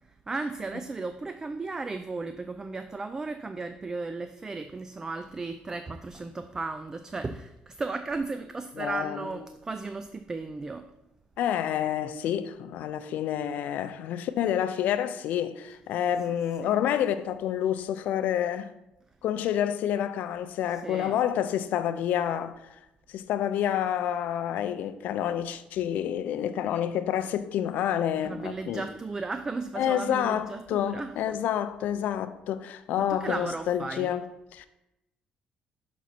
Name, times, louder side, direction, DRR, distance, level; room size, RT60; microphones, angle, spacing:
voice 1, 0.3-10.9 16.6-16.8 20.7-21.2 28.2-31.4 33.0-34.2, right 3 dB, 20° right, 0.3 m, -35 dB
voice 2, 8.8-9.3 11.4-18.7 19.2-22.6 23.1-28.8 29.8-34.2 34.5-34.7, left 10 dB, 70° left, 0.5 m, -28 dB
6.1 x 4.1 x 5.8 m
cardioid pair, 125°, 3 cm